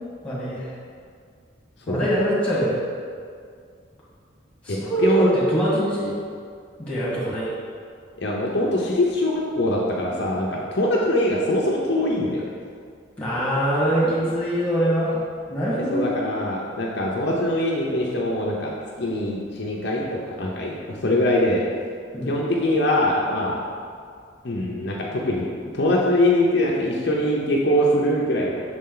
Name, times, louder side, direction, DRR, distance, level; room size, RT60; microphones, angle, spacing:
voice 1, 0.2-0.7 1.9-2.9 4.6-6.2 6.8-7.5 13.2-15.2 15.5-16.1 22.1-22.4, right 1 dB, 5° left, -8 dB, 1.5 m, -23 dB
voice 2, 4.7-5.3 8.2-12.4 15.9-18.7 19.0-21.6 22.3-23.6 24.4-25.5 25.7-28.6, left 1 dB, 55° left, -3 dB, 0.6 m, -22 dB
6.2 x 4.3 x 3.8 m, 2.2 s
head